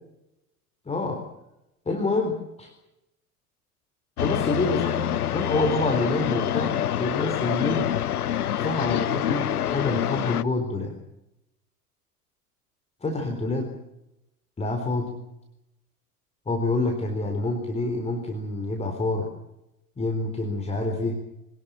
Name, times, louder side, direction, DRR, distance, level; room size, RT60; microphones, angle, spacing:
voice 1, 0.9-1.2 1.9-2.7 4.2-7.9 8.6-10.9 13.0-13.7 14.6-15.2 16.5-19.3 20.0-21.2, left 2 dB, 15° left, 3 dB, 4.2 m, -27 dB
sound 1, 4.2-10.4, left 10 dB, 75° left, 0.8 m, -26 dB
24.0 x 19.5 x 7.6 m, 0.88 s
figure-of-eight pair, 80°, 45 cm